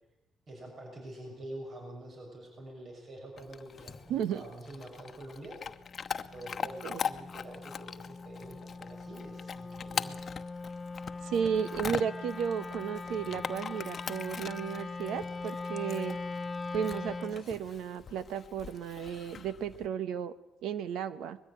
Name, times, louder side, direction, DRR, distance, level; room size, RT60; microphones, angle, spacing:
voice 1, 0.5-5.6 6.3-10.2, right 1 dB, 50° right, 1 dB, 6.4 m, -46 dB
Chewing mastication / Dog, 3.4-19.9, left 6 dB, 45° left, 1.0 m, -42 dB
voice 2, 4.1-4.4 6.8-7.0 11.2-16.2 16.7-20.3 20.6-21.4, right 8 dB, 85° right, 14 dB, 1.2 m, -34 dB
Wind instrument woodwind instrument, 5.8-17.4, left 3 dB, 30° left, 0.8 m, -41 dB
21.0 x 14.5 x 9.8 m, 0.94 s
cardioid pair, 90°, 0 cm